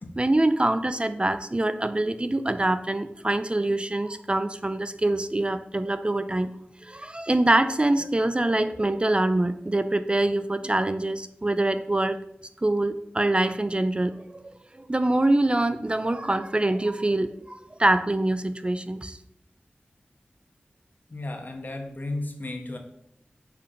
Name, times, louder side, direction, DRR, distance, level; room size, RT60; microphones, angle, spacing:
voice 1, 0.2-6.5 6.8-12.2 12.6-19.2, right 1 dB, 25° right, 11 dB, 0.4 m, -25 dB
voice 2, 21.1-22.8, left 2 dB, 50° left, 4 dB, 1.3 m, -34 dB
8.6 x 3.7 x 5.2 m, 0.76 s
wide cardioid pair, 50°, 4 cm